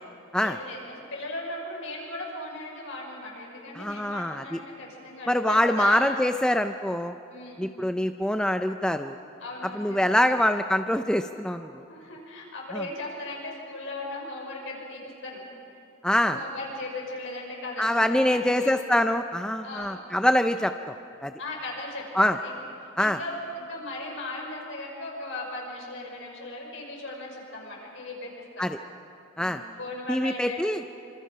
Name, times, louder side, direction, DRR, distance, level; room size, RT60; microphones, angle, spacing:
voice 1, 0.4-6.0 7.3-7.6 9.4-10.4 11.9-15.4 16.2-18.8 19.6-20.0 21.4-22.6 23.0-28.7 29.3-30.6, left 2 dB, 65° left, -1 dB, 6.0 m, -37 dB
voice 2, 3.8-4.6 5.3-7.2 7.6-9.2 9.7-11.8 12.7-12.8 16.0-16.4 17.8-21.0 21.2-21.3 22.1-22.4 23.0-23.2 28.6-28.8 29.4-29.6 30.1-30.8, left 1 dB, 5° left, 8 dB, 0.4 m, -24 dB
26.0 x 26.0 x 5.6 m, 2.7 s
head